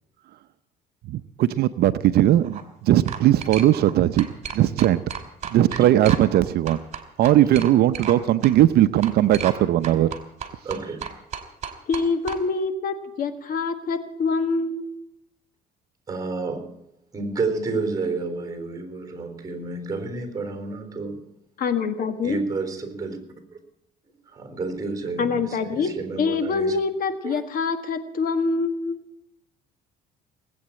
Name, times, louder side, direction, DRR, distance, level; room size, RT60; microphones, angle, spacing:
voice 1, 1.1-4.3 4.5-5.0 5.5-6.8 7.2-10.1, right 13 dB, 70° right, 0.7 m, -19 dB
sound 1, 2.3-2.6 3.1-6.4 6.7-8.2 8.4-8.5 9.0-9.6 9.8-12.4, right 8 dB, 40° right, 2.6 m, -33 dB
voice 2, 5.5-5.8 7.4-7.5 10.6-11.0 16.1-16.8 17.1-21.2 22.2-23.2 24.3-26.8 27.2-27.4, right 3 dB, 20° right, 3.9 m, -30 dB
voice 3, 11.9-14.9 21.6-22.4 25.2-25.9 26.2-29.0, left 4 dB, 60° left, 1.6 m, -25 dB
19.0 x 8.7 x 8.7 m
cardioid pair, 110°, 17 cm